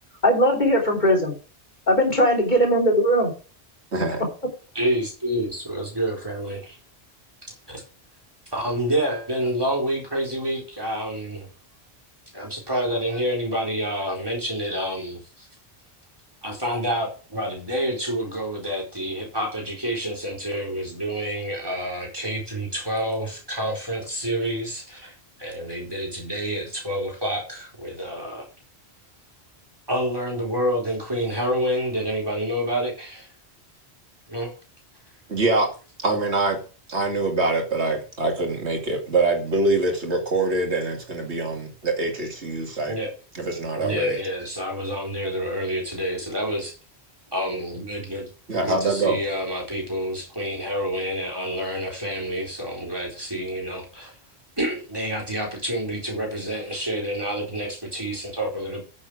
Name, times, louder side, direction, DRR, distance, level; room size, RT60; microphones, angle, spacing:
voice 1, 0.2-1.3 1.9-3.3 4.2-4.3, equal, 45° left, 3.5 m, -19 dB
voice 2, 3.9-4.2 35.3-35.7 36.0-36.6 36.9-42.9 43.4-44.1 48.5-49.2, right 2 dB, 85° right, 2.7 m, -24 dB
voice 3, 4.7-6.8 7.7-7.8 8.5-11.5 12.3-15.5 16.4-28.5 29.9-33.3 34.3-34.5 42.9-43.1 43.7-46.8 47.3-48.3 48.6-54.1 54.6-58.8, equal, 20° right, 4.3 m, -28 dB
9.5 x 7.4 x 4.8 m
omnidirectional pair, 1.1 m